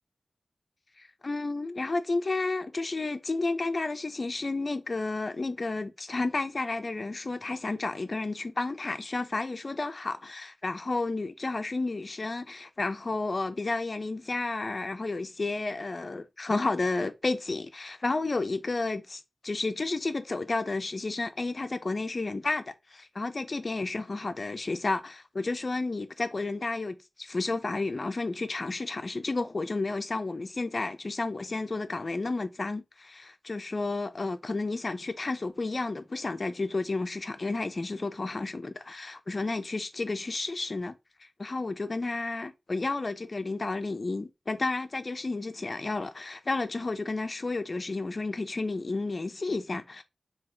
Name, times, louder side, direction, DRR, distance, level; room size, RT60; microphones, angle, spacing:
voice 1, 1.0-40.9 41.4-50.0, left 3 dB, 50° left, 0.5 m, -31 dB
3.9 x 2.8 x 3.2 m
wide cardioid pair, 75°, 0 cm